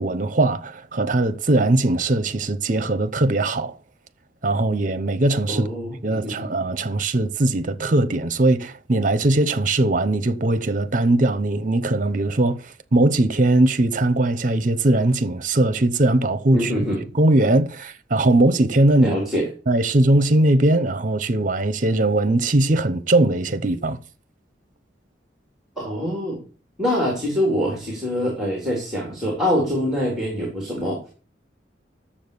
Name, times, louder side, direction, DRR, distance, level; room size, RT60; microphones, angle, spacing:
voice 1, 0.0-3.7 4.4-5.7 6.0-16.7 17.1-19.2 19.7-24.0, right 2 dB, 45° right, 0.9 m, -20 dB
voice 2, 5.5-6.5 16.5-17.0 19.0-19.4 25.8-26.4 26.8-31.1, equal, ahead, 3.8 m, -24 dB
10.0 x 7.3 x 6.9 m
head